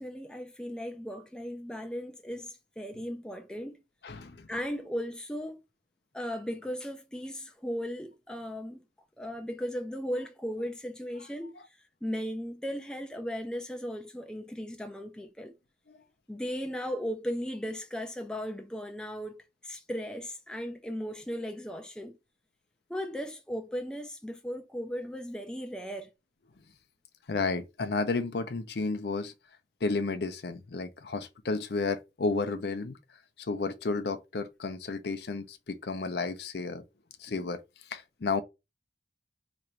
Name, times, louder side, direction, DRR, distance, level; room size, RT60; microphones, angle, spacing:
voice 1, 0.0-3.8 4.5-5.6 6.1-8.8 9.2-11.5 12.0-15.5 16.3-22.2 22.9-26.1, equal, 5° left, 0.4 m, -36 dB
voice 2, 4.0-4.5 15.9-16.0 27.3-29.3 29.8-33.0 33.4-36.8 37.2-37.6 37.9-38.4, left 3 dB, 65° left, 0.5 m, -32 dB
3.0 x 2.5 x 4.3 m
head